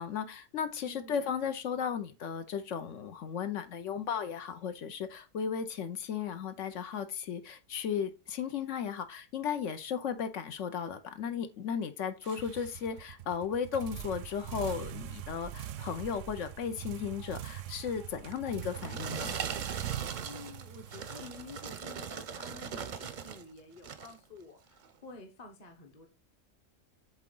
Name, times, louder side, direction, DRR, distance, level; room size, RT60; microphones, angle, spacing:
voice 1, 0.0-19.3, left 7 dB, 75° left, 1.1 m, -35 dB
voice 2, 0.8-1.2 20.2-26.1, left 3 dB, 35° left, 1.0 m, -50 dB
sound 1, 12.2-22.0, right 12 dB, 80° right, 0.9 m, -42 dB
sound 2, 18.3-23.4 23.8-24.2 24.8-24.9, right 7 dB, 50° right, 0.6 m, -40 dB
7.8 x 3.7 x 3.8 m
omnidirectional pair, 1.3 m